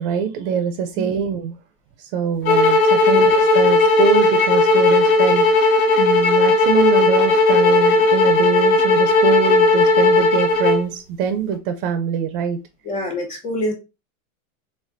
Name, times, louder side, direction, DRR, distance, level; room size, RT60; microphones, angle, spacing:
voice 1, 0.0-1.5 2.0-12.6, right 7 dB, 40° right, 8 dB, 0.4 m, -24 dB
sound 1, 2.5-10.8, left 3 dB, 80° left, 1.4 m, -15 dB
voice 2, 12.8-13.7, left 1 dB, 15° left, 3 dB, 1.0 m, -26 dB
4.2 x 3.3 x 2.5 m, 0.28 s
supercardioid pair, 140°, 42 cm